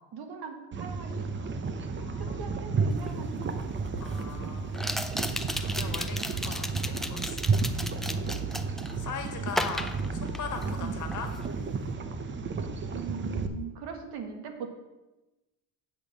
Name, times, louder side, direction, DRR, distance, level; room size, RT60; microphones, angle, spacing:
voice 1, 0.1-1.5 2.2-3.7 10.8-11.0 12.9-14.7, right 6 dB, 70° right, 5 dB, 1.6 m, -41 dB
sound 1, 0.7-13.5, right 4 dB, 30° right, 0.7 m, -32 dB
voice 2, 2.0-2.5 4.0-4.8 5.6-8.2 9.0-11.3, left 6 dB, 45° left, 5 dB, 1.6 m, -40 dB
sound 2, 3.1-3.2 4.7-9.0 9.5-10.8 11.1-11.5, left 1 dB, ahead, 0.3 m, -34 dB
8.2 x 5.3 x 7.2 m, 1.1 s
cardioid pair, 120°, 40 cm